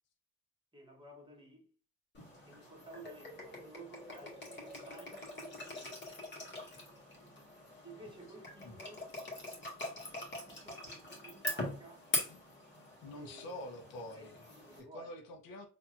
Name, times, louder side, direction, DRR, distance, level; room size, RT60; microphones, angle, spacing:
voice 1, 0.7-1.7 2.5-6.1 7.8-9.1 10.1-12.1 13.1-13.6 14.1-15.1, right 2 dB, 15° right, 1.7 m, -54 dB
sound 1, 2.1-14.8, left 2 dB, 30° left, 1.9 m, -43 dB
voice 2, 13.0-14.4 14.9-15.7, left 1 dB, 85° left, 1.1 m, -46 dB
4.4 x 2.9 x 2.5 m
cardioid pair, 95°, 34 cm